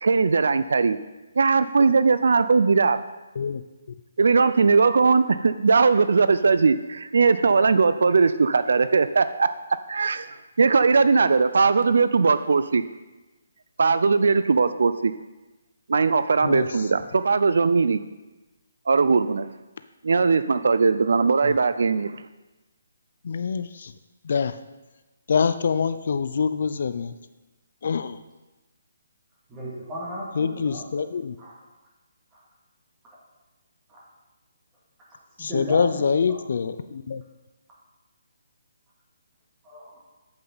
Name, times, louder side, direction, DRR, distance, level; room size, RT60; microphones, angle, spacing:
voice 1, 0.0-1.0 1.4-3.0 4.2-9.5 9.9-12.8 13.8-15.1 15.9-18.0 18.9-19.5 20.0-22.2, right 4 dB, 70° right, 13 dB, 0.3 m, -19 dB
voice 2, 23.2-23.9 24.2-24.6 25.3-27.1 27.8-28.2 30.4-31.4 35.4-37.2, left 6 dB, 50° left, 11 dB, 0.4 m, -25 dB
voice 3, 29.5-31.0 31.4-31.5 32.3-32.4 33.9-34.0 35.4-36.4 39.6-40.0, equal, 10° right, -6 dB, 2.1 m, -35 dB
8.7 x 7.7 x 3.9 m, 1.1 s
hypercardioid pair, 170°, 0 cm